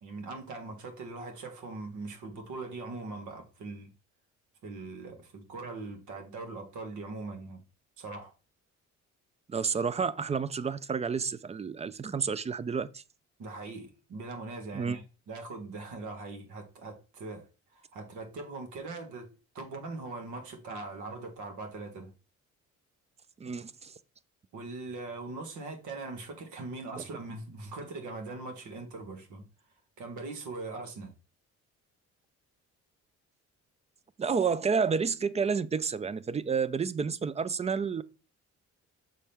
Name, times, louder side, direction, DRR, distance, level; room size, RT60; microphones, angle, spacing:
voice 1, 0.0-3.9 4.6-7.6 8.0-8.3 13.4-17.4 17.7-19.3 19.5-22.1 24.5-29.5 30.0-31.1, right 3 dB, 75° right, 1.5 m, -41 dB
voice 2, 9.5-13.0 14.7-15.0 23.4-23.9 27.0-27.1 34.2-38.0, right 5 dB, 25° right, 0.3 m, -30 dB
6.2 x 4.3 x 3.5 m
cardioid pair, 90°, 30 cm